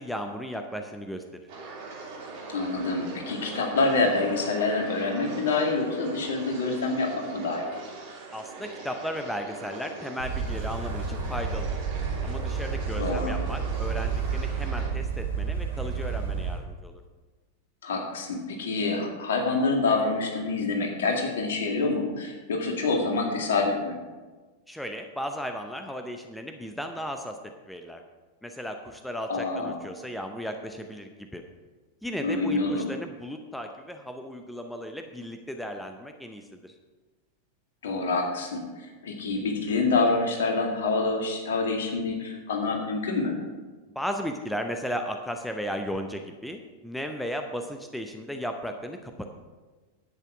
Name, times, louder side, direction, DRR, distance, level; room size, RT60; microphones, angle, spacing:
voice 1, 0.0-1.4 8.3-11.8 12.2-17.0 24.7-27.4 27.7-28.0 28.4-31.4 32.0-36.7 43.9-49.3, equal, 5° left, 5 dB, 0.7 m, -35 dB
sound 1, 1.5-14.9, right 3 dB, 45° right, 2.7 m, -41 dB
voice 2, 2.5-7.7 13.0-13.4 17.8-24.0 29.3-29.8 32.2-32.9 37.8-43.3, left 3 dB, 60° left, 1 dB, 2.0 m, -27 dB
sound 2, 10.2-16.6, right 5 dB, 75° right, 2.1 m, -30 dB
10.5 x 8.4 x 4.7 m, 1.3 s
figure-of-eight pair, 90°, 0 cm